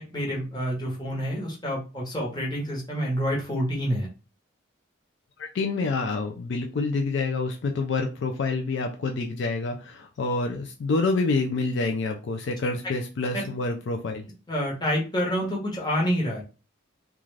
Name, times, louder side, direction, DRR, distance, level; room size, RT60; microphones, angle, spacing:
voice 1, 0.1-4.1 13.3-13.4 14.5-16.4, equal, 20° left, -3 dB, 0.9 m, -27 dB
voice 2, 5.4-14.3, left 3 dB, 60° left, 4 dB, 0.3 m, -27 dB
2.4 x 2.3 x 3.1 m, 0.32 s
head